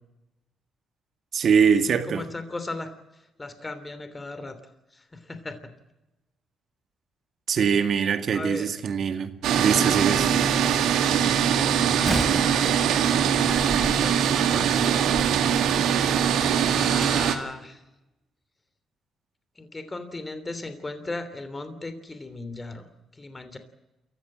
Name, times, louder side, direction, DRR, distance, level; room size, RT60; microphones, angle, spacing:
voice 1, 1.3-2.2 7.5-10.5, right 6 dB, 60° right, 2.1 m, -23 dB
voice 2, 2.1-5.6 8.3-8.7 11.9-12.4 13.7-14.9 16.6-17.8 19.5-22.9 23.1-23.6, left 2 dB, 20° left, 3.1 m, -37 dB
sound 1, 9.4-17.3, right 8 dB, 85° right, 2.1 m, -22 dB
Slam, 11.9-17.3, right 1 dB, ahead, 3.4 m, -36 dB
27.5 x 15.0 x 8.7 m
cardioid pair, 90°, 0 cm